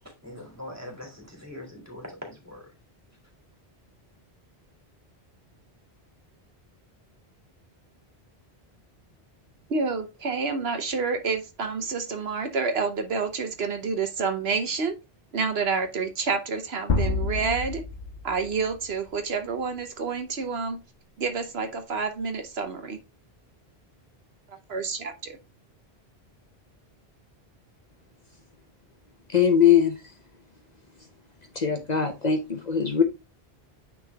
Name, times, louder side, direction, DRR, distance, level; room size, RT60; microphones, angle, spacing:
voice 1, 0.2-2.7, left 1 dB, 15° right, 2.7 m, -41 dB
voice 2, 9.7-15.0 15.3-17.8 18.2-20.8 21.2-23.0 24.7-25.4, right 5 dB, 75° right, 1.2 m, -28 dB
sound 1, 16.9-18.9, left 3 dB, 65° left, 1.4 m, -28 dB
voice 3, 29.3-29.9 31.6-33.0, left 8 dB, 45° left, 1.0 m, -21 dB
9.4 x 3.9 x 3.4 m
omnidirectional pair, 1.1 m